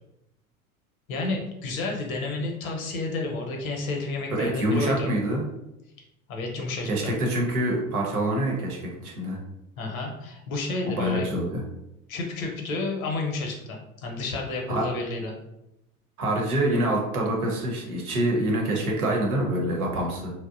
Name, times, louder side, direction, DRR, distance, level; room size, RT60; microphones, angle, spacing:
voice 1, 1.1-5.1 6.3-7.1 9.8-11.3 12.1-15.3, left 2 dB, 70° left, 1 dB, 0.8 m, -31 dB
voice 2, 4.3-5.4 6.9-9.4 10.8-11.6 14.7-14.8 16.2-20.3, right 1 dB, 80° right, -1 dB, 0.8 m, -26 dB
2.8 x 2.1 x 2.5 m, 0.86 s
figure-of-eight pair, 80°, 43 cm